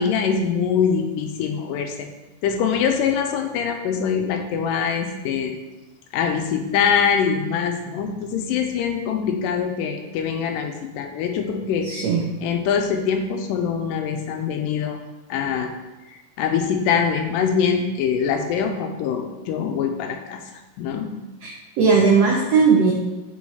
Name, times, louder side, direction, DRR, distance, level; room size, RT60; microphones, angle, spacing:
voice 1, 0.0-2.1 2.4-5.5 6.1-11.9 12.4-15.0 15.3-15.7 16.4-20.4 20.8-21.1, left 7 dB, 80° left, 5 dB, 2.2 m, -23 dB
voice 2, 11.8-12.2 21.4-22.9, right 5 dB, 85° right, -1 dB, 1.4 m, -18 dB
6.4 x 4.6 x 4.2 m, 1.1 s
omnidirectional pair, 4.0 m